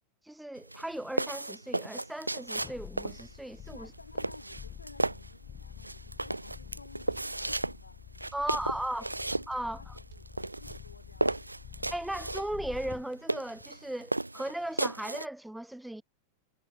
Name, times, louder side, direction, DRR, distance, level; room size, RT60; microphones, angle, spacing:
voice 1, 0.2-3.9 8.3-9.1 9.5-9.9 11.9-16.0, right 1 dB, 5° right, 0.8 m, -37 dB
sound 1, 0.6-15.3, right 2 dB, 85° right, 1.0 m, -35 dB
sound 2, 2.5-13.1 13.6-13.7, left 9 dB, 25° left, 1.1 m, -48 dB
voice 2, 3.7-8.7 9.0-9.3 9.6-11.6, left 3 dB, 80° left, 6.6 m, -54 dB
sound 3, 7.1-7.3 8.3-8.5 9.5-9.7 10.1-10.3 10.7-10.9 11.3-11.5, right 18 dB, 50° right, 4.3 m, -54 dB
figure-of-eight pair, 90°, 0 cm